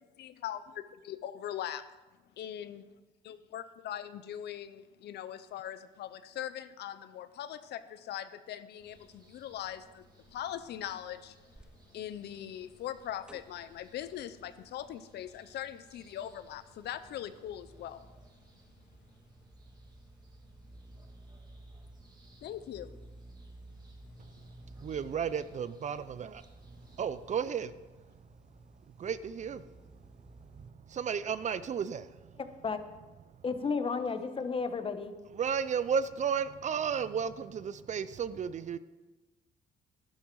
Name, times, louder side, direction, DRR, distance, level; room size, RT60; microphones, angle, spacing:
voice 1, 0.2-1.8 2.4-2.9 3.2-11.4 11.9-18.1 22.4-22.9, left 11 dB, 75° left, 0.7 m, -41 dB
sound 1, 8.8-27.5, right 2 dB, 25° right, 2.6 m, -63 dB
sound 2, 11.6-30.7, right 1 dB, 5° right, 0.7 m, -55 dB
voice 2, 24.2-26.5 26.9-28.3 28.9-32.4 35.3-38.8, right 7 dB, 45° right, 0.6 m, -34 dB
voice 3, 33.4-35.1, left 5 dB, 30° left, 1.1 m, -32 dB
12.0 x 11.0 x 4.7 m
cardioid pair, 105°, 17 cm